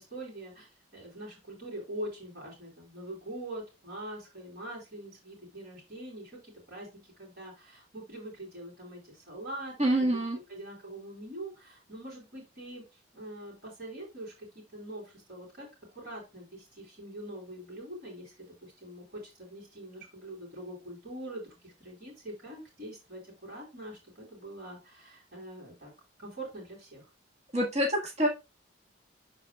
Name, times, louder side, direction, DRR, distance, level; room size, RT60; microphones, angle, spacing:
voice 1, 0.0-10.2 10.5-12.8 13.1-25.9 26.2-27.1, right 1 dB, 50° right, -4 dB, 3.3 m, -44 dB
voice 2, 9.8-10.4 27.5-28.3, right 1 dB, 35° right, -1 dB, 1.5 m, -26 dB
12.0 x 4.1 x 2.3 m, 0.26 s
head